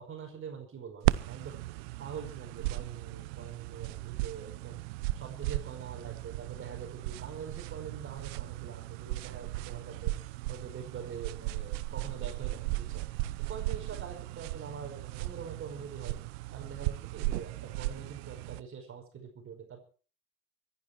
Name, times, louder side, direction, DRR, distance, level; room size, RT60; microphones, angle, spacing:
voice 1, 0.0-1.6 2.0-4.8 5.1-10.1 10.5-13.0 13.5-16.2 16.5-19.8, right 6 dB, 40° right, 4 dB, 5.2 m, -44 dB
sound 1, 1.0-18.6, right 18 dB, 75° right, 0.8 m, -36 dB
24.5 x 11.0 x 4.6 m, 0.40 s
hypercardioid pair, 75°, 31 cm